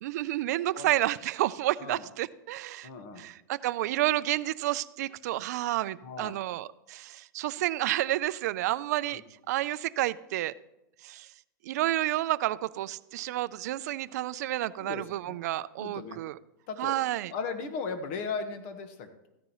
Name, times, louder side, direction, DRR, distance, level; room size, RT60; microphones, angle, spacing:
voice 1, 0.0-2.9 3.2-9.2 9.5-10.5 11.0-11.3 11.6-16.4 16.8-17.3, right 15 dB, 55° right, 16 dB, 0.4 m, -30 dB
voice 2, 2.8-3.3 6.0-6.4 9.1-9.2 14.8-15.4 15.8-16.2 16.7-17.0 17.3-19.3, left 5 dB, 40° left, 8 dB, 1.3 m, -37 dB
14.0 x 9.4 x 3.0 m, 0.91 s
supercardioid pair, 160°, 11 cm